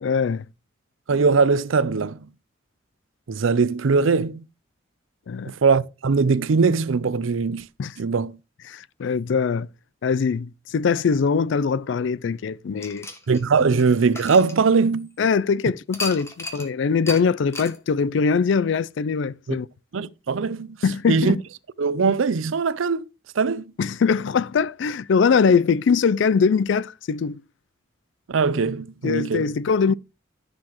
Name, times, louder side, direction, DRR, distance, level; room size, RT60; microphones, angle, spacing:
voice 1, 0.0-0.5 5.3-5.5 7.8-7.9 8.7-9.7 10.0-13.1 15.2-19.7 20.8-21.4 23.8-27.4 29.0-29.9, left 5 dB, 65° left, 0.4 m, -22 dB
voice 2, 1.1-2.2 3.3-4.5 5.5-7.6 8.0-8.3 13.3-15.1 19.5-19.6 19.9-20.8 21.1-21.4 21.8-23.1 23.4-23.6 28.3-29.5, right 4 dB, 80° right, 0.5 m, -21 dB
sound 1, 12.8-15.2 15.9-16.7 17.1-17.2 17.5-17.8, left 2 dB, 15° left, 1.3 m, -34 dB
13.5 x 6.7 x 3.0 m
head